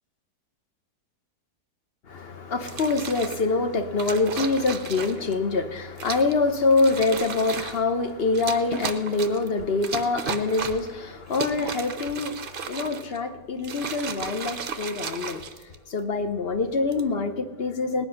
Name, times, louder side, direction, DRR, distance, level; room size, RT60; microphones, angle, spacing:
voice 1, 2.1-15.5 15.9-18.1, left 3 dB, 45° left, 9 dB, 0.9 m, -25 dB
sound 1, 2.6-3.4 4.0-5.3 6.0-6.4 6.7-7.8 8.3-9.5 9.8-10.9 11.3-13.2 13.6-16.0 16.7-17.1, right 6 dB, 50° right, 0.7 m, -34 dB
19.0 x 10.0 x 5.7 m, 1.4 s
omnidirectional pair, 1.7 m